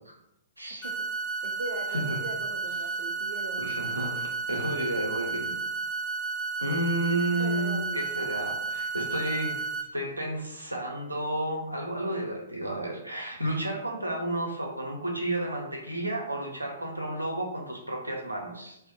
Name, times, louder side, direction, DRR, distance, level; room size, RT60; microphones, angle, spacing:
voice 1, 0.6-0.9 1.9-2.2 3.6-5.5 6.6-9.6 9.9-18.8, right 1 dB, 85° right, 1 dB, 0.7 m, -31 dB
sound 1, 0.8-9.8, right 4 dB, 15° left, 0.6 m, -32 dB
voice 2, 1.4-4.2 7.3-8.0 14.3-14.5, right 3 dB, 55° right, 1 dB, 0.3 m, -40 dB
2.5 x 2.1 x 3.8 m, 0.84 s
figure-of-eight pair, 115°, 0 cm